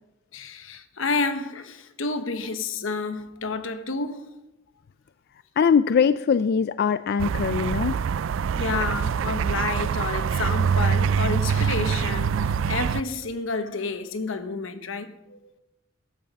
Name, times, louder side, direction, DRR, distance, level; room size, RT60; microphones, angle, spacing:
voice 1, 0.3-4.3 8.5-15.5, left 3 dB, 80° left, 1.2 m, -30 dB
voice 2, 5.6-8.0, left 6 dB, 55° left, 0.3 m, -21 dB
sound 1, 7.2-13.0, right 6 dB, 70° right, 0.3 m, -24 dB
13.5 x 11.0 x 5.4 m
head